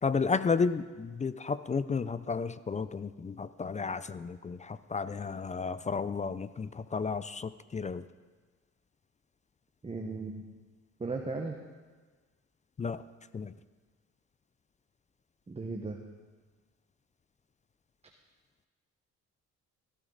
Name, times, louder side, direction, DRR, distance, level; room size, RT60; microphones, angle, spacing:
voice 1, 0.0-8.1 12.8-13.0 13.3-13.5, left 5 dB, 25° left, 15 dB, 0.4 m, -32 dB
voice 2, 9.8-10.4 11.0-11.6 15.5-16.0, right 3 dB, 20° right, 2 dB, 1.2 m, -36 dB
16.5 x 14.5 x 4.0 m, 1.4 s
cardioid pair, 90°, 30 cm